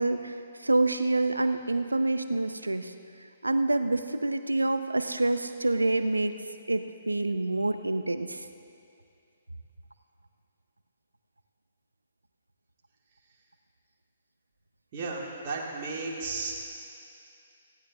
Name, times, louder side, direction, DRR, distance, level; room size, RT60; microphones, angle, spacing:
voice 1, 0.0-2.9 3.4-6.4 6.7-8.5, right 2 dB, 80° right, 10 dB, 0.6 m, -27 dB
voice 2, 14.9-16.5, right 3 dB, 40° right, -3 dB, 2.3 m, -34 dB
19.5 x 15.5 x 2.7 m, 2.6 s
figure-of-eight pair, 125°, 0 cm